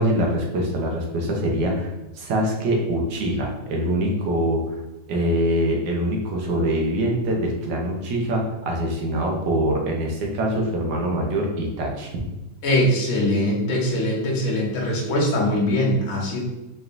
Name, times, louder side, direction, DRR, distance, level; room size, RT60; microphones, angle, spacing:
voice 1, 0.0-4.8 5.1-12.1, right 1 dB, 75° right, 0 dB, 1.5 m, -24 dB
voice 2, 12.6-16.4, left 1 dB, 55° left, -3 dB, 1.3 m, -22 dB
4.7 x 3.2 x 2.5 m, 1.0 s
omnidirectional pair, 2.0 m